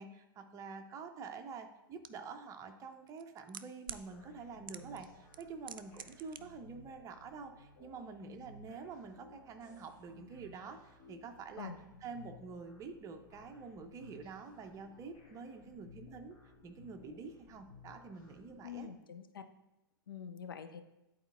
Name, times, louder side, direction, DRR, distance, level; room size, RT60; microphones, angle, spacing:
voice 1, 0.0-11.7 12.0-16.4 16.6-18.9, right 5 dB, 25° right, 6 dB, 0.7 m, -47 dB
sound 1, 2.0-2.1 3.1-4.0 4.7-5.1 5.3-6.4 6.7-6.8, right 8 dB, 70° right, 0.4 m, -45 dB
sound 2, 4.1-18.8, left 3 dB, 50° left, 1.9 m, -58 dB
voice 2, 18.6-19.4 20.1-20.8, left 8 dB, 70° left, 8 dB, 0.5 m, -45 dB
10.5 x 4.2 x 2.5 m, 0.93 s
figure-of-eight pair, 95°, 12 cm